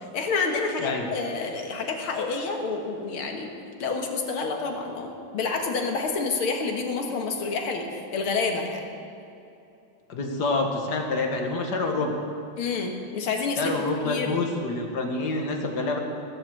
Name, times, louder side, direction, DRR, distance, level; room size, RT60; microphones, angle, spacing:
voice 1, 0.1-3.5 3.8-8.8 12.6-13.7 14.0-14.5, left 4 dB, 85° left, 3 dB, 2.4 m, -28 dB
voice 2, 10.1-12.2 13.6-16.0, left 3 dB, 55° left, 3 dB, 2.1 m, -27 dB
19.5 x 8.2 x 7.9 m, 2.7 s
omnidirectional pair, 2.3 m